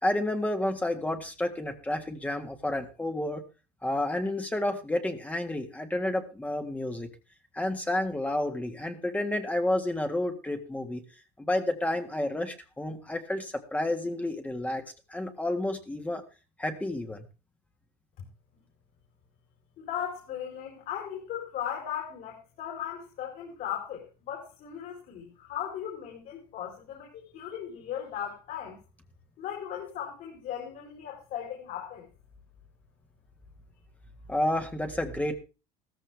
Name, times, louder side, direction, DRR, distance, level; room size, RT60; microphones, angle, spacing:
voice 1, 0.0-3.4 3.8-7.1 7.5-11.0 11.4-14.8 15.1-16.2 16.6-17.2 34.3-35.3, left 1 dB, 10° left, 5 dB, 1.7 m, -30 dB
voice 2, 19.8-28.8 29.4-32.1, left 9 dB, 55° left, 0 dB, 4.4 m, -37 dB
16.0 x 14.0 x 3.5 m, 0.32 s
cardioid pair, 130°, 18 cm